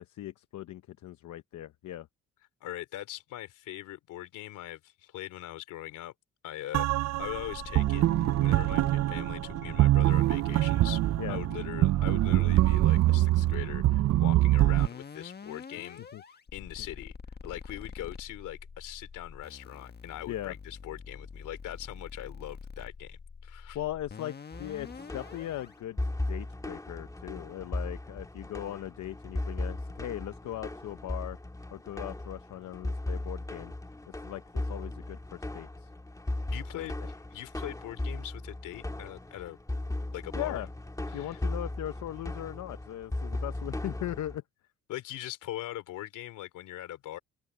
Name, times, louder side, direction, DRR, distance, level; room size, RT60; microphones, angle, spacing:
voice 1, 0.0-2.1 11.2-11.4 16.1-16.2 20.3-20.5 23.7-31.4 31.7-33.7 34.1-35.9 36.7-36.9 40.3-40.7 41.1-44.4, left 13 dB, 70° left, 0.8 m, -39 dB
voice 2, 2.6-6.1 6.4-8.0 8.4-16.0 16.5-17.1 17.4-23.8 36.5-39.6 40.1-40.6 41.1-41.4 44.9-47.2, left 14 dB, 90° left, 3.0 m, -41 dB
sound 1, 6.7-14.9, right 15 dB, 60° right, 0.5 m, -24 dB
sound 2, 7.2-25.7, left 5 dB, 35° left, 1.5 m, -46 dB
sound 3, 24.5-44.4, left 2 dB, 10° left, 2.1 m, -37 dB
open air
cardioid pair, 90°, 30 cm